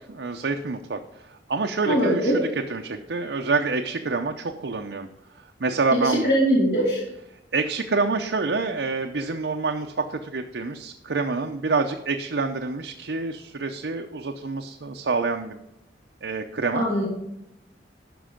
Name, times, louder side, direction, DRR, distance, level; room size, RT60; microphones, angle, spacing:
voice 1, 0.0-5.1 5.6-6.3 7.5-15.6 16.2-16.8, right 4 dB, 85° right, 3 dB, 0.7 m, -27 dB
voice 2, 1.8-2.3 5.9-7.0 16.8-17.1, equal, 65° left, -6 dB, 3.6 m, -21 dB
13.0 x 5.4 x 5.1 m, 0.84 s
head